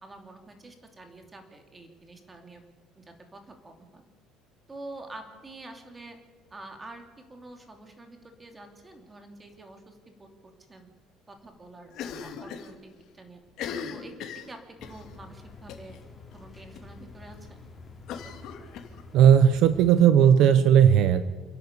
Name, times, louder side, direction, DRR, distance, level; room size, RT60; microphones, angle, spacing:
voice 1, 0.0-2.6 2.9-4.0 4.7-6.2 6.5-10.9 11.3-13.4 13.9-16.0 16.3-17.7, right 2 dB, 15° right, 4 dB, 2.9 m, -47 dB
Cough, 11.9-12.7 13.0-13.1 13.5-15.0 15.7-16.0 16.3-16.4 16.7-16.8 18.1-19.3, left 7 dB, 60° left, 2.6 m, -38 dB
sound 1, 14.8-20.1, left 4 dB, 20° left, 3.3 m, -48 dB
voice 2, 19.1-21.2, right 9 dB, 60° right, 12 dB, 0.9 m, -17 dB
28.5 x 11.0 x 8.3 m, 1.4 s
cardioid pair, 140°, 0 cm